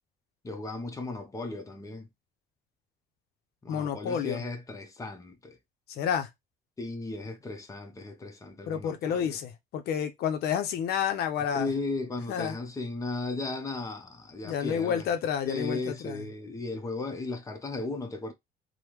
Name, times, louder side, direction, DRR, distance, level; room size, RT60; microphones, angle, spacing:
voice 1, 0.4-2.1 3.6-5.6 6.8-9.4 11.5-15.1 15.4-18.3, left 3 dB, 20° left, 0.7 m, -36 dB
voice 2, 3.7-4.4 5.9-6.3 8.7-11.7 12.3-12.6 14.4-16.2, left 8 dB, 70° left, 0.6 m, -30 dB
3.4 x 2.1 x 3.0 m
cardioid pair, 110°, 17 cm